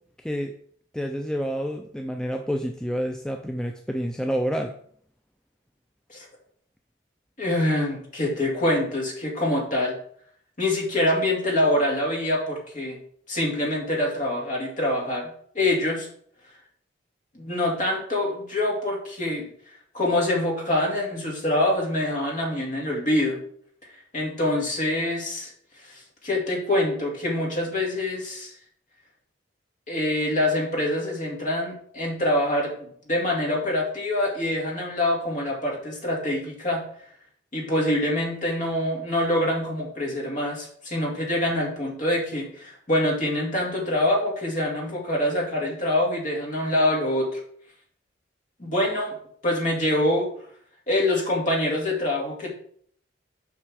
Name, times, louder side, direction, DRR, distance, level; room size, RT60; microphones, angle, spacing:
voice 1, 0.2-0.5 0.9-4.7, equal, 5° left, 4 dB, 0.3 m, -28 dB
voice 2, 7.4-10.0 10.6-13.0 13.3-16.1 17.3-19.5 19.9-23.4 24.1-25.5 25.8-28.5 29.9-36.8 37.5-47.4 48.6-49.1 49.4-50.3 50.9-52.5, left 1 dB, 40° left, -2 dB, 2.2 m, -25 dB
6.0 x 5.6 x 4.7 m, 0.62 s
head